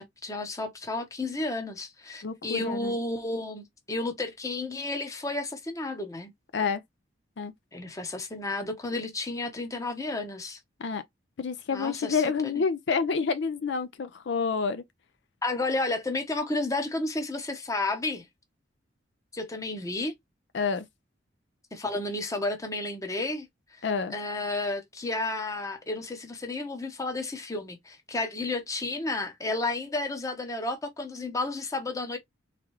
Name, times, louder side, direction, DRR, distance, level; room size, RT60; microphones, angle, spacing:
voice 1, 0.0-6.3 7.7-10.6 11.7-12.5 15.4-18.3 19.3-20.1 21.7-23.8 24.1-32.2, left 2 dB, 15° left, 0.8 m, -32 dB
voice 2, 2.2-3.0 6.5-6.8 7.4-7.5 10.8-11.0 11.4-14.8 20.5-20.8 23.8-24.1, left 5 dB, 65° left, 0.4 m, -28 dB
3.6 x 3.2 x 3.0 m
head